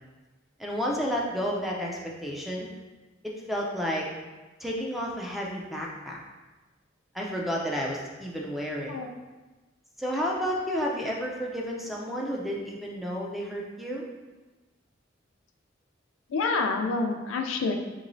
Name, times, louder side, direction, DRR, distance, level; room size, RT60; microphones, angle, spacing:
voice 1, 0.6-2.7 3.2-4.1 4.6-6.2 7.1-9.0 10.0-14.0, equal, ahead, -2 dB, 0.4 m, -31 dB
voice 2, 16.3-17.7, left 3 dB, 80° left, 3 dB, 0.4 m, -27 dB
3.8 x 3.0 x 2.6 m, 1.2 s
head